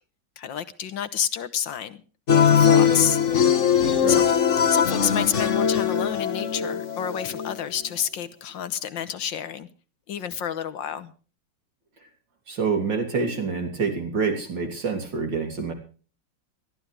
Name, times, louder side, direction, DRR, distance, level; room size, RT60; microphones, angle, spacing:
voice 1, 0.4-2.0 2.5-3.2 3.6-4.3 4.7-9.7 10.1-11.1, left 9 dB, 75° left, 1.8 m, -29 dB
sound 1, 2.3-7.6, left 8 dB, 40° left, 1.4 m, -20 dB
voice 2, 12.5-15.7, right 5 dB, 65° right, 4.0 m, -27 dB
21.0 x 14.0 x 3.4 m
omnidirectional pair, 2.1 m